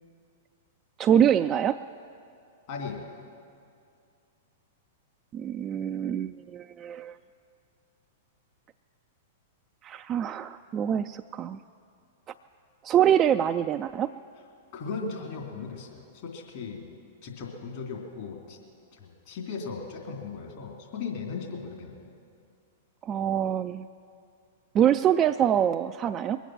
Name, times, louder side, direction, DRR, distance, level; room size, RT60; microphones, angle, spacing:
voice 1, 1.0-1.8 5.3-7.2 9.8-11.6 12.8-14.1 23.0-23.9 24.7-26.4, right 9 dB, 30° right, 7 dB, 0.3 m, -25 dB
voice 2, 2.7-3.1 14.7-16.9 17.2-18.6 18.9-22.1, left 5 dB, 55° left, -1 dB, 2.9 m, -37 dB
22.0 x 9.1 x 6.3 m, 2.4 s
figure-of-eight pair, 105°, 0 cm